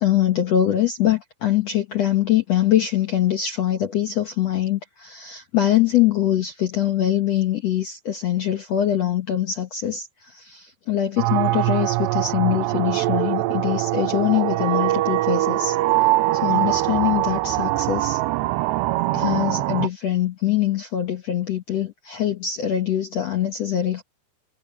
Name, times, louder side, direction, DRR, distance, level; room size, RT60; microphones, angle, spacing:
voice 1, 0.0-15.8 16.3-18.2 19.1-24.0, left 11 dB, 75° left, 1.5 m, -23 dB
sound 1, 11.2-19.9, right 18 dB, 90° right, 2.8 m, -22 dB
omnidirectional pair, 4.9 m